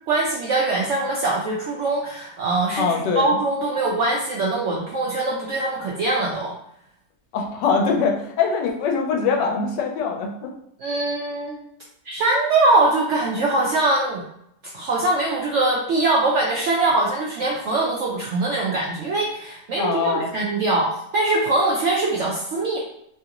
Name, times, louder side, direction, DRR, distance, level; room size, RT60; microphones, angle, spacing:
voice 1, 0.1-6.5 10.8-11.6 12.0-14.2 14.7-22.8, right 2 dB, 75° right, -3 dB, 0.6 m, -22 dB
voice 2, 2.8-3.4 7.3-10.5 19.8-20.3, left 5 dB, 90° left, 2 dB, 1.2 m, -23 dB
3.0 x 2.5 x 2.8 m, 0.76 s
omnidirectional pair, 1.8 m